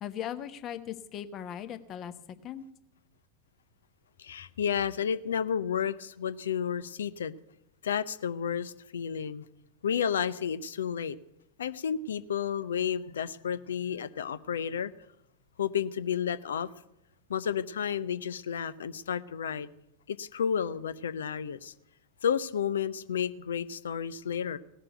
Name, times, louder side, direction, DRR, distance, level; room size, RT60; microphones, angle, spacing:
voice 1, 0.0-2.1 2.4-2.6, left 10 dB, 30° left, 1.1 m, -38 dB
voice 2, 4.2-7.3 7.8-9.4 9.8-11.2 11.6-14.9 15.6-16.7 17.3-19.7 20.1-21.7 22.2-24.6, left 8 dB, 65° left, 0.7 m, -31 dB
17.5 x 6.7 x 10.0 m
figure-of-eight pair, 90°, 0 cm